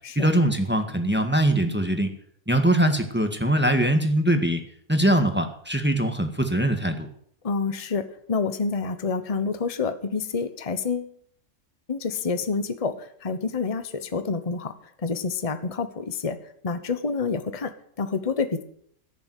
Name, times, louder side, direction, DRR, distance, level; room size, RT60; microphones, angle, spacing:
voice 1, 0.1-2.1 2.5-4.6 4.9-7.1, right 1 dB, 5° right, 6 dB, 1.6 m, -22 dB
voice 2, 7.4-11.1 11.9-14.7 15.0-16.4 16.6-18.6, left 4 dB, 25° left, 10 dB, 1.1 m, -28 dB
16.5 x 7.1 x 9.3 m, 0.65 s
omnidirectional pair, 1.5 m